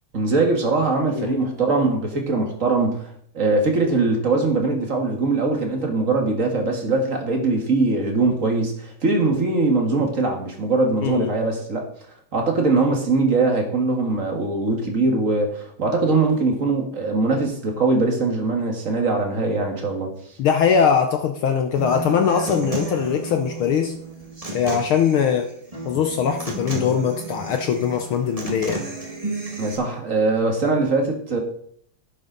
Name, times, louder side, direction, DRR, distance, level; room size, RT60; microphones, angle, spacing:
voice 1, 0.1-3.1 3.3-11.9 12.3-20.1 29.6-31.4, right 3 dB, 35° right, 2 dB, 1.6 m, -21 dB
voice 2, 11.0-11.3 20.4-23.9 24.5-25.5 25.9-28.8, left 7 dB, 75° left, 6 dB, 1.2 m, -21 dB
Human voice / Acoustic guitar, 21.8-29.7, right 3 dB, 15° right, 1.5 m, -32 dB
11.0 x 9.6 x 3.9 m, 0.65 s
omnidirectional pair, 3.3 m